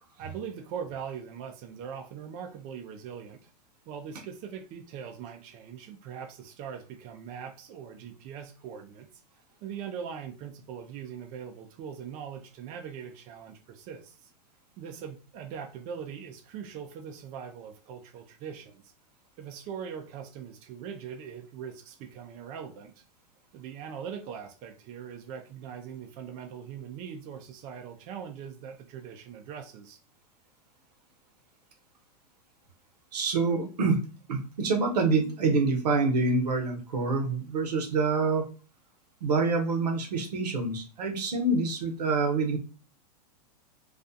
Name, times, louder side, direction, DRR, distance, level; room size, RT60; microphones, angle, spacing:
voice 1, 0.2-3.5 3.9-9.1 9.6-14.3 14.8-18.8 19.4-23.0 23.5-30.0, right 7 dB, 40° right, 4 dB, 0.4 m, -41 dB
voice 2, 33.1-34.0 34.3-38.4 39.2-42.6, right 3 dB, 80° right, 4 dB, 0.8 m, -26 dB
2.4 x 2.3 x 2.5 m, 0.36 s
hypercardioid pair, 110°, 21 cm